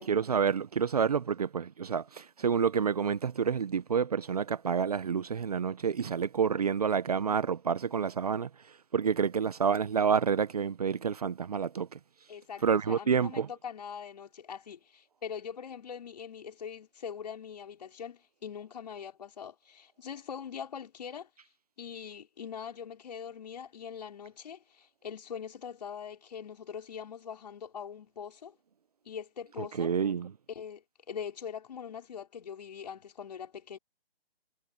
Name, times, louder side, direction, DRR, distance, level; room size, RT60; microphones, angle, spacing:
voice 1, 0.0-8.5 8.9-12.0 12.6-13.5 29.6-30.3, right 6 dB, 35° right, 1.1 m, -28 dB
voice 2, 12.3-21.3 21.8-28.5 29.0-29.9 30.5-33.8, left 7 dB, 40° left, 5.7 m, -42 dB
hypercardioid pair, 165°, 32 cm